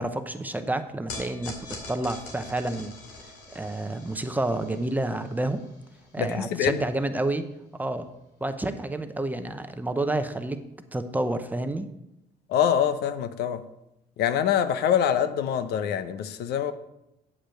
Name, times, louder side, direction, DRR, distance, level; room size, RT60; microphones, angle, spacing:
voice 1, 0.0-1.5 1.9-2.9 3.5-5.6 6.1-7.4 7.8-8.1 8.4-10.6 10.9-11.9, right 2 dB, 10° right, 8 dB, 0.7 m, -29 dB
sound 1, 1.1-7.5, left 3 dB, 90° left, 2.5 m, -44 dB
voice 2, 6.2-6.8 12.5-13.6 14.2-16.7, left 9 dB, 75° left, 11 dB, 0.7 m, -25 dB
8.7 x 5.0 x 7.6 m, 0.87 s
cardioid pair, 110°, 17 cm